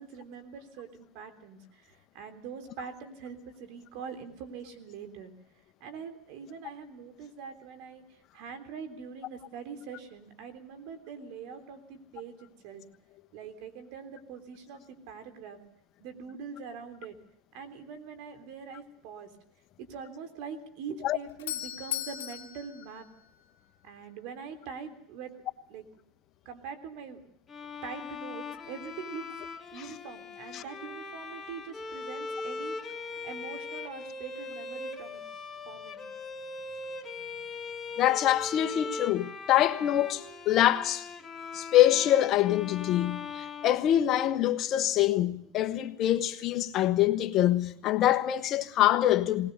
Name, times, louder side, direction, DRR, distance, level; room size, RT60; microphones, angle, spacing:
voice 1, 0.0-5.3 5.8-12.8 13.3-15.6 16.0-17.2 17.5-19.3 19.8-23.1 23.8-25.3 25.7-25.8 26.4-27.2 27.8-29.3 29.7-35.2 35.6-36.0, right 6 dB, 65° right, 3.4 m, -43 dB
Doorbell, 21.0-23.9, left 12 dB, 80° left, 2.8 m, -38 dB
Bowed string instrument, 27.5-44.5, left 4 dB, 25° left, 2.3 m, -40 dB
voice 2, 38.0-41.1 41.5-49.5, left 12 dB, 50° left, 1.3 m, -25 dB
20.0 x 19.5 x 6.8 m
hypercardioid pair, 95°, 0 cm